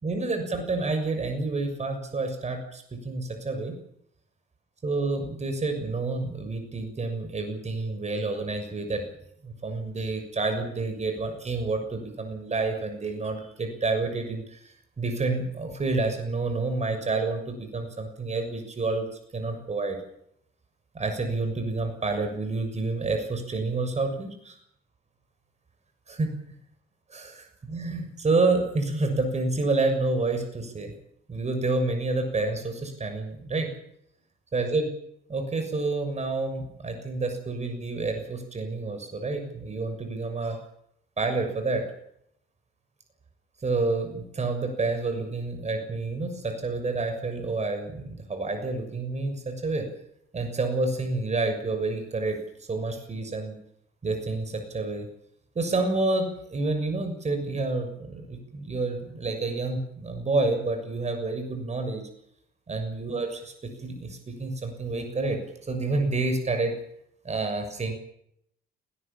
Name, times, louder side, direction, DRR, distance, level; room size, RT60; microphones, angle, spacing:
voice 1, 0.0-3.8 4.8-9.0 9.4-19.1 19.3-20.0 20.9-24.6 26.1-26.3 27.1-30.9 31.3-33.7 34.5-34.9 35.3-40.6 41.2-41.8 43.6-49.9 50.3-53.6 54.0-55.1 55.6-62.0 62.7-66.7 67.2-67.9, right 3 dB, 35° right, 6 dB, 6.8 m, -29 dB
20.0 x 18.5 x 8.9 m, 0.72 s
cardioid pair, 90°, 20 cm